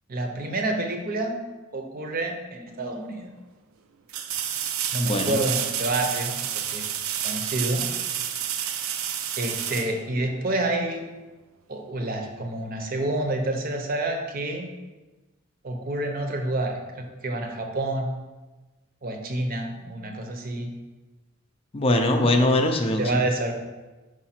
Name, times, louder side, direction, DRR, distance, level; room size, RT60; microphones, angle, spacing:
voice 1, 0.1-1.4 1.7-3.3 4.9-6.8 7.2-7.9 9.4-11.0 11.7-14.7 15.6-18.1 19.0-20.7 23.0-23.5, right 2 dB, 45° right, 4 dB, 0.7 m, -28 dB
sound 1, 2.7-2.8 4.1-10.7 13.6-13.7, right 9 dB, 80° right, 0.5 m, -30 dB
voice 2, 5.0-5.4 21.7-23.2, left 1 dB, 30° left, 4 dB, 0.5 m, -22 dB
4.9 x 4.8 x 4.3 m, 1.2 s
head